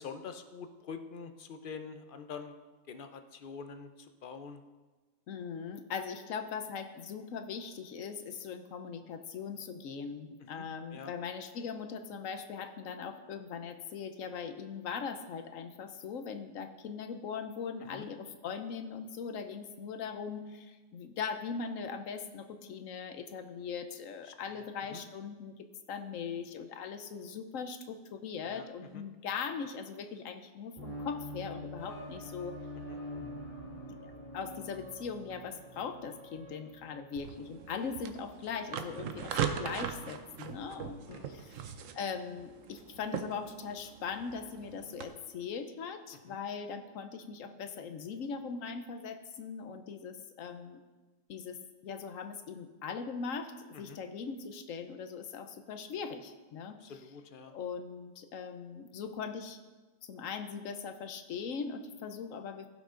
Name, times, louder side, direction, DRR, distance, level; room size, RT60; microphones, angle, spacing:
voice 1, 0.0-2.6 2.9-4.6 10.4-11.1 17.8-18.1 24.2-25.0 28.4-29.0 32.9-33.0 41.1-41.5 46.1-46.4 53.7-54.0 56.8-57.5, left 5 dB, 50° left, 8 dB, 0.7 m, -46 dB
voice 2, 5.3-25.6 25.9-32.6 34.3-50.8 51.3-53.5 53.8-56.8 57.5-59.6 60.0-62.7, left 6 dB, 90° left, 8 dB, 1.2 m, -40 dB
sound 1, 30.8-38.1, left 1 dB, 40° right, 2.4 m, -45 dB
sound 2, 37.2-45.1, right 8 dB, 80° right, 1.1 m, -40 dB
15.5 x 6.0 x 3.8 m, 1.3 s
omnidirectional pair, 1.3 m